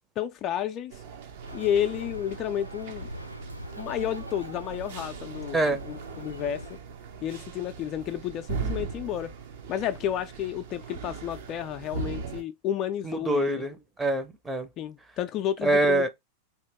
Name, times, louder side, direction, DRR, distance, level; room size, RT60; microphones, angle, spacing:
voice 1, 0.2-1.0 1.5-3.1 3.8-6.8 7.2-9.3 9.7-13.6 14.8-16.1, left 10 dB, 35° left, 0.4 m, -31 dB
sound 1, 0.9-12.4, right 5 dB, 55° right, 0.7 m, -39 dB
Bird, 1.4-6.8, equal, 90° right, 0.4 m, -42 dB
voice 2, 13.0-14.7 15.6-16.1, right 2 dB, 10° right, 0.7 m, -25 dB
3.0 x 2.8 x 3.3 m
figure-of-eight pair, 90°, 0 cm